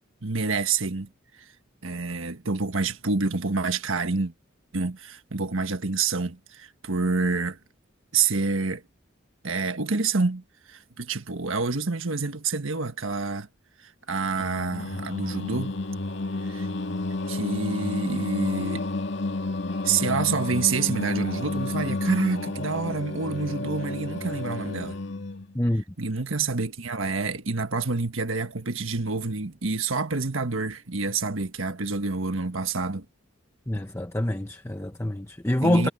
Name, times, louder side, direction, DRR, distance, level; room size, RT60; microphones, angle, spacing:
voice 1, 0.2-1.1 1.8-4.3 4.7-7.6 8.1-8.8 9.4-13.5 14.1-15.8 16.4-16.7 17.3-18.8 19.8-25.0 26.0-33.0 35.6-35.9, right 4 dB, 75° right, 1.5 m, -27 dB
Singing, 14.4-25.5, left 2 dB, 55° left, 2.4 m, -31 dB
voice 2, 33.7-35.9, left 1 dB, 15° left, 1.0 m, -25 dB
head